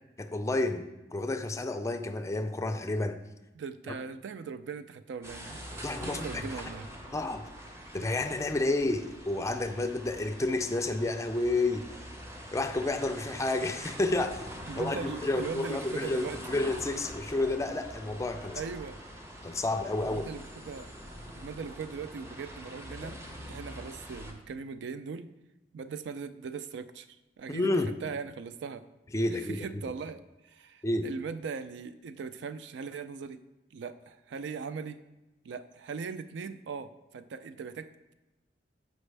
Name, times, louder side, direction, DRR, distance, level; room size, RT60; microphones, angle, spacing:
voice 1, 0.2-3.2 5.8-6.4 7.1-7.5 7.9-11.9 12.5-14.4 14.8-18.6 19.4-20.3 27.5-27.9 29.1-29.9 30.8-31.1, left 2 dB, 15° left, 8 dB, 0.4 m, -30 dB
voice 2, 3.6-5.7 6.0-6.9 14.7-16.6 18.5-19.0 20.0-20.9 21.4-25.3 25.7-27.1 27.4-27.7 28.0-28.8 29.5-33.4 33.7-35.0 35.4-38.1, right 5 dB, 75° right, 12 dB, 0.4 m, -39 dB
sound 1, 5.2-24.3, equal, 15° right, 0.7 m, -44 dB
6.2 x 5.1 x 3.3 m, 1.0 s
head